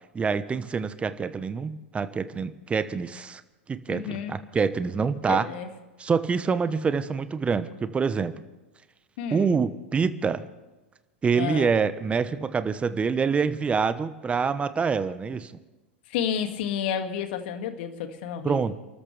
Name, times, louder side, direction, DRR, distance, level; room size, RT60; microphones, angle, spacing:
voice 1, 0.1-3.4 3.7-5.5 6.0-8.4 9.3-10.4 11.2-15.5 18.4-18.8, right 5 dB, 20° right, 12 dB, 1.1 m, -26 dB
voice 2, 3.9-4.4 5.3-5.7 9.2-9.5 11.3-11.7 16.1-18.7, left 8 dB, 60° left, 7 dB, 2.2 m, -31 dB
29.5 x 13.5 x 3.4 m, 1.1 s
hypercardioid pair, 100°, 6 cm